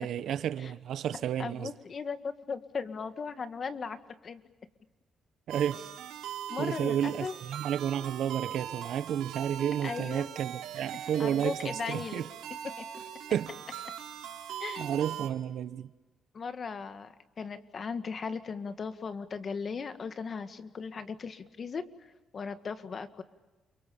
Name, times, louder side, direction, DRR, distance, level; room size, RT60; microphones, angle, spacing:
voice 1, 0.0-1.7 5.5-5.9 6.6-12.3 13.3-13.8 14.8-15.9, right 9 dB, 75° right, 1.0 m, -31 dB
voice 2, 1.4-4.4 6.5-7.3 9.8-10.3 11.2-12.3 12.8-12.9 14.6-15.0 16.3-23.2, left 5 dB, 45° left, 1.9 m, -37 dB
sound 1, 5.5-15.3, right 9 dB, 90° right, 3.7 m, -41 dB
30.0 x 23.5 x 7.1 m
cardioid pair, 90°, 0 cm